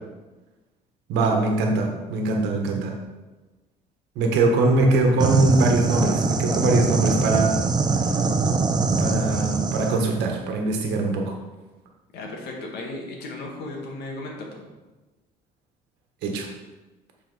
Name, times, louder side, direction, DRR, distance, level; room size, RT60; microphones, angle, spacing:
voice 1, 1.1-3.0 4.1-7.5 8.1-8.3 9.0-11.3 16.2-16.5, right 2 dB, 85° right, 2 dB, 1.3 m, -22 dB
sound 1, 5.2-10.0, right 4 dB, 25° right, 0.6 m, -23 dB
voice 2, 12.1-14.7, left 2 dB, 75° left, 0 dB, 1.6 m, -35 dB
8.3 x 4.1 x 4.0 m, 1.2 s
cardioid pair, 110°, 17 cm